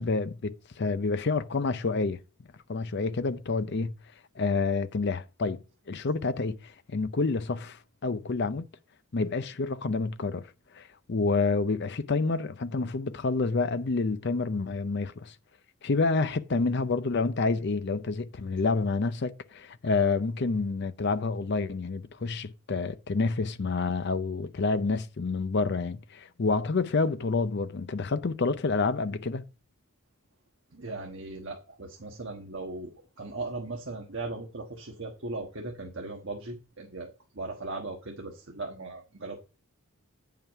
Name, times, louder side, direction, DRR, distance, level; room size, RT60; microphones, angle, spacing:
voice 1, 0.0-2.2 2.7-3.9 4.4-5.6 5.9-8.7 9.1-15.3 15.8-29.4, left 3 dB, 50° left, 0.5 m, -28 dB
voice 2, 30.7-32.9 33.2-39.4, right 2 dB, 55° right, 1.3 m, -38 dB
8.9 x 5.7 x 4.5 m
head